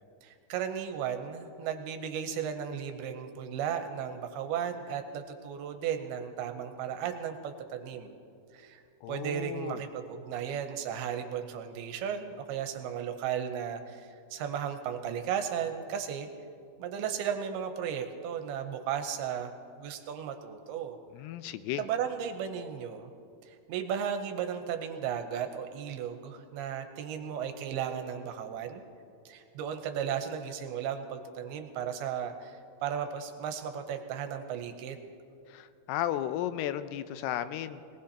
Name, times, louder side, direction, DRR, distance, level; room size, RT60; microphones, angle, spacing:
voice 1, 0.2-8.2 8.5-8.8 9.1-16.3 16.8-19.5 19.8-21.0 21.8-23.1 23.5-28.8 29.3-35.0, right 8 dB, 85° right, 6 dB, 2.6 m, -35 dB
voice 2, 9.0-9.8 21.1-21.8 35.5-37.8, left 12 dB, 85° left, 12 dB, 2.5 m, -34 dB
22.0 x 18.5 x 2.9 m, 2.4 s
omnidirectional pair, 4.6 m